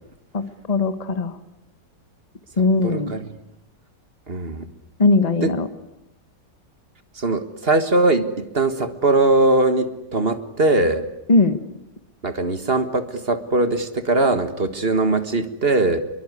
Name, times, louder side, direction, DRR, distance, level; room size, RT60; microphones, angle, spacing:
voice 1, 0.7-1.3 2.6-3.1 5.0-5.7 11.3-11.6, left 3 dB, 25° left, 10 dB, 1.3 m, -19 dB
voice 2, 2.8-3.3 4.3-4.7 5.4-5.5 7.2-11.0 12.2-16.0, right 2 dB, 35° right, 10 dB, 1.7 m, -20 dB
27.0 x 23.0 x 9.7 m, 0.86 s
omnidirectional pair, 2.0 m